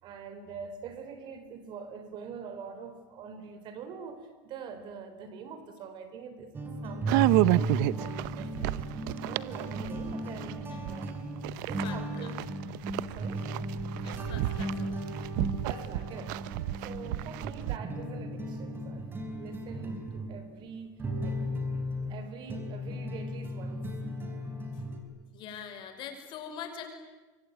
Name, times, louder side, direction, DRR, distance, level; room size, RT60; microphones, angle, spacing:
voice 1, 0.0-8.9 9.2-11.3 11.6-12.4 13.1-13.5 15.6-16.4 16.8-19.1 19.4-21.5 22.1-24.0, right 6 dB, 45° right, 4.0 m, -44 dB
sound 1, 6.5-22.2 22.5-25.0, right 1 dB, 20° right, 4.9 m, -36 dB
sound 2, 7.1-11.1 11.4-17.8, right 19 dB, 75° right, 0.8 m, -30 dB
voice 2, 10.7-11.1 11.5-12.3 14.0-15.0 24.7-24.8 25.3-26.9, left 8 dB, 50° left, 5.6 m, -44 dB
26.0 x 24.0 x 9.6 m
supercardioid pair, 135°, 10 cm